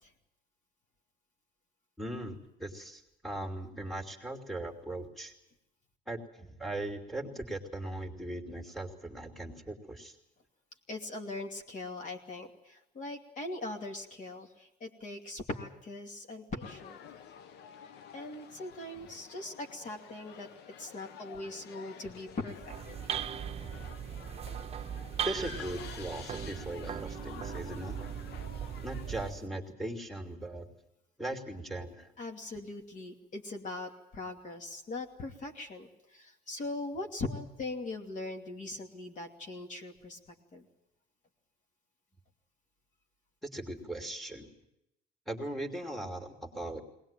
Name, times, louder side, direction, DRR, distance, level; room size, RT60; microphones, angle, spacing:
voice 1, 2.0-5.3 6.1-10.2 25.2-28.0 28.8-30.7 31.2-32.1 43.4-44.5 45.3-46.8, right 1 dB, ahead, 3 dB, 2.9 m, -39 dB
voice 2, 10.9-17.0 18.1-20.5 20.8-22.7 27.1-27.2 32.2-40.2 40.5-40.7, left 2 dB, 45° left, 3 dB, 2.7 m, -40 dB
sound 1, 16.6-29.3, left 8 dB, 80° left, 1.2 m, -50 dB
sound 2, 22.5-29.5, right 9 dB, 35° right, 0.8 m, -39 dB
21.5 x 19.5 x 9.1 m, 0.85 s
cardioid pair, 110°, 17 cm